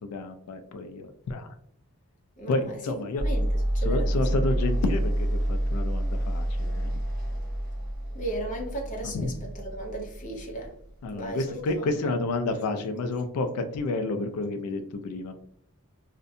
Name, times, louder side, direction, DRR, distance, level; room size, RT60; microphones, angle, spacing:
voice 1, 0.1-1.6 2.5-3.3 3.8-6.9 9.0-9.3 11.0-15.4, left 2 dB, 90° left, 10 dB, 0.3 m, -30 dB
voice 2, 2.4-2.8 3.2-3.4 3.7-4.4 8.1-10.8 11.1-12.1, right 1 dB, 35° left, 0 dB, 0.6 m, -36 dB
sound 1, 3.2-11.3, right 1 dB, 40° right, 0.6 m, -28 dB
2.5 x 2.1 x 2.6 m, 0.66 s
head